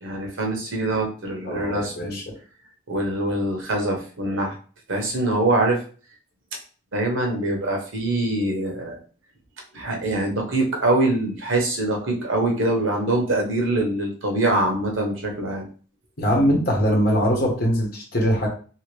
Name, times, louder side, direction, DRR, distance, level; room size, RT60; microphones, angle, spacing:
voice 1, 0.0-2.2 2.9-4.5 4.9-5.8 6.9-9.0 9.7-15.6, right 2 dB, 80° right, 1 dB, 1.0 m, -24 dB
voice 2, 1.4-2.3 16.2-18.5, equal, 50° left, 0 dB, 1.1 m, -22 dB
2.9 x 2.8 x 3.2 m, 0.39 s
head